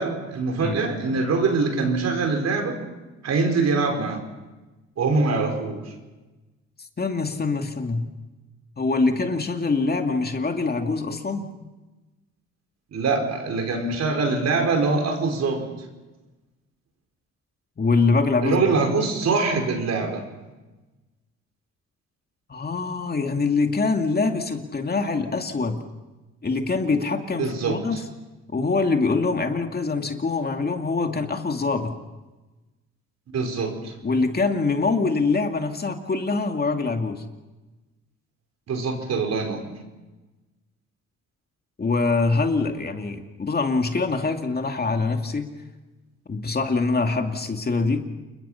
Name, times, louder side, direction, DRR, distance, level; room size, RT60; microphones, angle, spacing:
voice 1, 0.0-2.8 3.2-4.2 5.0-5.9 12.9-15.7 18.4-20.2 27.4-28.0 33.3-33.9 38.7-39.7, right 4 dB, 60° right, 4 dB, 5.1 m, -24 dB
voice 2, 7.0-8.1 8.8-11.5 17.8-18.8 22.5-25.8 26.4-28.0 28.5-31.9 34.0-37.2 41.8-45.5 46.3-48.0, left 3 dB, 30° left, 4 dB, 2.4 m, -24 dB
29.0 x 22.0 x 5.8 m, 1.1 s
cardioid pair, 90°, 30 cm